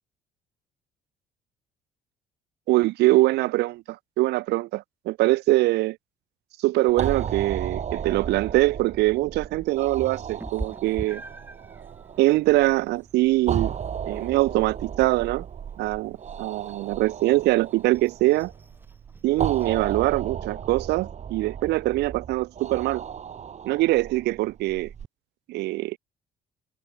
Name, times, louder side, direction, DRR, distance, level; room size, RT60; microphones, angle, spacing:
voice 1, 2.7-6.0 6.6-11.2 12.2-13.8 14.0-15.4 15.8-18.5 19.2-23.0 23.6-24.9 25.5-26.0, right 19 dB, 80° right, 0.8 m, -23 dB
sound 1, 6.9-25.1, right 8 dB, 40° right, 3.4 m, -35 dB
Meow, 10.4-20.0, right 2 dB, 10° right, 5.7 m, -45 dB
cardioid pair, 110°, 17 cm